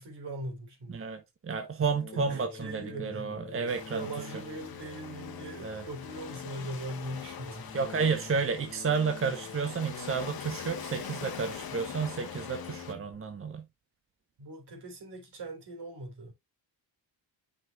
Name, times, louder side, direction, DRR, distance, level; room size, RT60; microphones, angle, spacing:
voice 1, 0.0-1.1 1.8-7.8 9.2-9.4 14.4-16.3, right 1 dB, 65° right, 3.5 m, -41 dB
voice 2, 0.9-4.1 5.6-5.8 7.7-13.6, right 5 dB, 30° right, 0.9 m, -31 dB
sound 1, 1.9-13.1, left 5 dB, 30° left, 2.3 m, -46 dB
Waves surf, 3.7-12.9, left 8 dB, 55° left, 1.2 m, -44 dB
9.1 x 5.6 x 2.3 m
cardioid pair, 90°, 44 cm